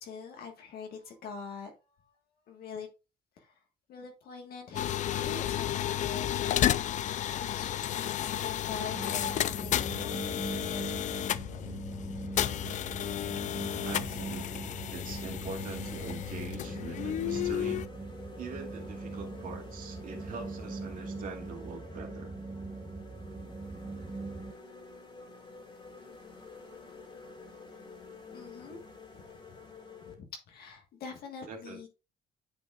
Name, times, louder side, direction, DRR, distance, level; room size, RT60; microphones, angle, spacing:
voice 1, 0.0-1.7 2.0-2.1 2.5-2.9 3.4-3.6 3.9-7.0 7.3-11.7 12.2-12.3 28.3-28.8 29.5-29.6 30.1-31.9, left 5 dB, 70° left, 1.5 m, -45 dB
sound 1, 4.7-17.9, left 11 dB, 45° left, 0.4 m, -32 dB
sound 2, 8.9-24.5, right 3 dB, 10° right, 0.8 m, -41 dB
voice 2, 13.8-17.8 18.4-22.3 31.5-31.9, right 4 dB, 55° right, 2.3 m, -43 dB
sound 3, 14.0-30.1, left 3 dB, 30° left, 2.4 m, -50 dB
9.5 x 5.2 x 2.4 m
cardioid pair, 110°, 17 cm